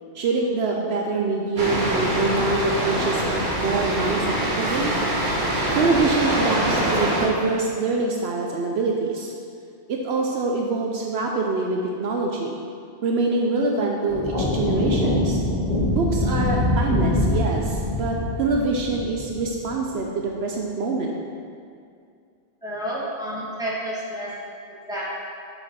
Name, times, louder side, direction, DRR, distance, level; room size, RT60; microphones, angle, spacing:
voice 1, 0.1-4.9 5.7-9.3 9.9-12.6 13.0-15.4 15.9-21.1, right 3 dB, 70° right, 0 dB, 0.9 m, -25 dB
sound 1, 1.6-7.3, right 1 dB, 45° right, 1.2 m, -24 dB
sound 2, 14.1-19.7, left 1 dB, 45° left, 1.9 m, -24 dB
voice 2, 22.6-24.5 24.9-25.1, equal, 5° right, -8 dB, 1.6 m, -30 dB
7.5 x 5.0 x 4.2 m, 2.3 s
omnidirectional pair, 1.2 m